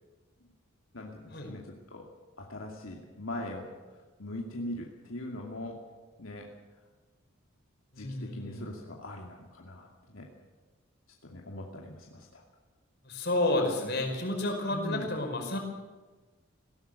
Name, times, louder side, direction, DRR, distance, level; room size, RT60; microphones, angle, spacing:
voice 1, 0.9-2.1 2.4-5.9 6.2-6.8 8.0-10.3 11.2-12.4 14.7-15.1, left 1 dB, 75° left, 0 dB, 2.5 m, -41 dB
voice 2, 7.9-8.7 13.0-15.6, left 2 dB, 50° left, 3 dB, 5.0 m, -30 dB
20.0 x 17.0 x 8.0 m, 1.3 s
head